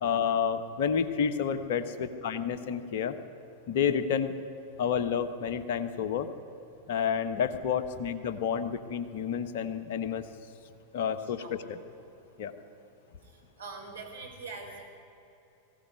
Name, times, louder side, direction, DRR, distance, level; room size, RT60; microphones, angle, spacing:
voice 1, 0.0-3.2 3.7-4.3 4.8-6.3 6.9-10.2 10.9-11.8 12.4-12.5, left 7 dB, 55° left, 10 dB, 1.3 m, -30 dB
voice 2, 11.2-11.7 13.6-14.8, right 4 dB, 75° right, -1 dB, 5.0 m, -43 dB
21.0 x 16.0 x 9.6 m, 3.0 s
figure-of-eight pair, 90°, 0 cm